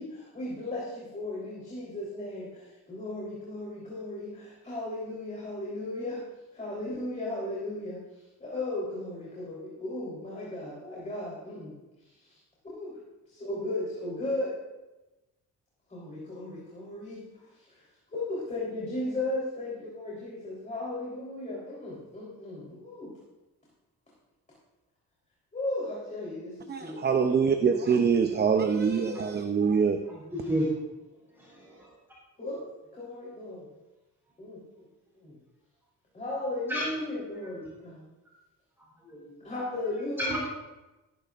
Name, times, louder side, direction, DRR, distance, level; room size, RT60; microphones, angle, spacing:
voice 1, 0.0-6.2 6.5-8.0 8.4-11.7 12.2-12.4 12.6-13.0 13.3-14.5 15.9-17.3 17.5-17.8 18.1-23.1 25.5-27.3 27.6-27.8 28.3-29.2 32.4-32.6 32.9-33.6 34.4-34.6 35.2-35.4 36.1-38.0 39.4-40.4, left 2 dB, 25° left, -6 dB, 3.8 m, -36 dB
voice 2, 26.7-30.0, right 6 dB, 30° right, 6 dB, 0.7 m, -24 dB
voice 3, 30.1-30.8 31.3-31.9 36.7-36.9 39.0-39.3 40.2-40.4, equal, 5° right, -6 dB, 4.1 m, -31 dB
18.5 x 11.0 x 2.5 m, 1.1 s
cardioid pair, 115°, 32 cm